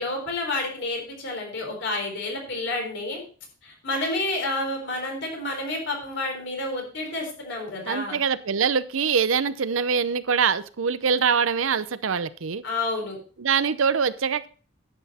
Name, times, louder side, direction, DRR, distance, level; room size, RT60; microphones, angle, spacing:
voice 1, 0.0-3.2 3.6-8.2 12.6-13.2, left 2 dB, 60° left, 2 dB, 4.1 m, -29 dB
voice 2, 7.9-12.6 13.4-14.5, right 6 dB, 75° right, 15 dB, 0.7 m, -24 dB
11.0 x 8.0 x 4.2 m, 0.39 s
head